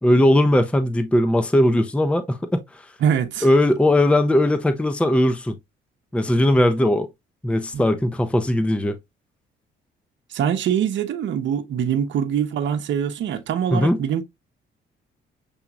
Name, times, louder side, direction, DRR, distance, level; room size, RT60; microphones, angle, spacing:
voice 1, 0.0-2.8 3.4-5.6 6.1-7.1 7.4-9.0 13.7-14.0, left 1 dB, 5° left, 0.6 m, -19 dB
voice 2, 3.0-3.5 7.7-7.8 10.3-14.2, right 8 dB, 70° right, 0.8 m, -23 dB
7.0 x 2.9 x 2.3 m
cardioid pair, 90°, 20 cm